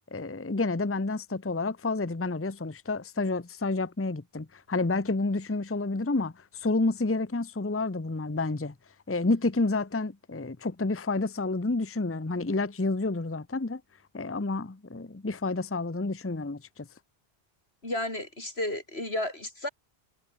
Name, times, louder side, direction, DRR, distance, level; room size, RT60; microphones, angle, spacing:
voice 1, 0.1-8.7 9.1-13.8 14.1-16.9, left 3 dB, 15° left, 0.8 m, -29 dB
voice 2, 17.8-19.7, left 1 dB, 85° left, 7.5 m, -32 dB
omnidirectional pair, 1.0 m